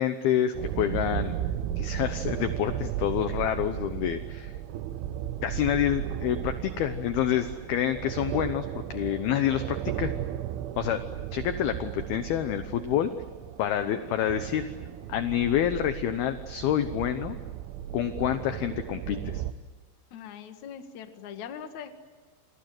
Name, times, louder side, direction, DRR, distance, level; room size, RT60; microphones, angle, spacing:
voice 1, 0.0-1.3 1.8-4.5 5.4-10.1 10.8-11.0 11.3-13.1 13.6-14.7 15.1-17.4 17.9-19.4, left 10 dB, 70° left, 9 dB, 2.5 m, -28 dB
sound 1, 0.6-19.5, right 11 dB, 85° right, 3.5 m, -35 dB
voice 2, 20.1-21.9, left 8 dB, 55° left, 7 dB, 2.4 m, -41 dB
29.5 x 25.0 x 7.9 m, 1.4 s
omnidirectional pair, 5.4 m